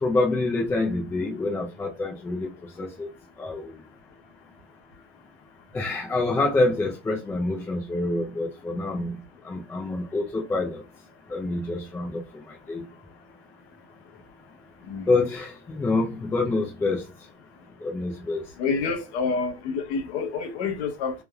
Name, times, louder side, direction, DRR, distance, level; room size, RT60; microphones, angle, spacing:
voice 1, 0.0-2.5 2.8-3.1 3.4-3.8 5.7-9.2 9.4-10.8 11.3-12.2 12.7-12.8 15.1-17.0 17.8-18.4, left 2 dB, 5° left, 0.4 m, -26 dB
voice 2, 18.6-21.1, left 4 dB, 60° left, 0.9 m, -28 dB
3.2 x 2.0 x 2.3 m
hypercardioid pair, 120°, 36 cm